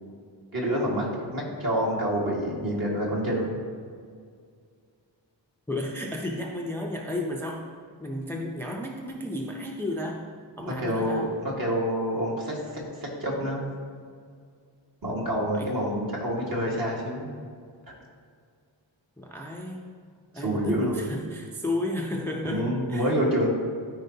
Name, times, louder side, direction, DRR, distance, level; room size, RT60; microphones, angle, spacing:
voice 1, 0.5-3.6 10.8-13.7 15.0-17.3 20.3-21.0 22.4-23.5, equal, 50° right, -3 dB, 1.8 m, -27 dB
voice 2, 5.7-7.6 8.0-10.3 10.6-11.3 15.5-15.7 19.2-20.0 20.3-23.1, left 1 dB, 5° left, 0 dB, 0.5 m, -33 dB
13.0 x 4.7 x 2.8 m, 2.1 s
wide cardioid pair, 135°, 46 cm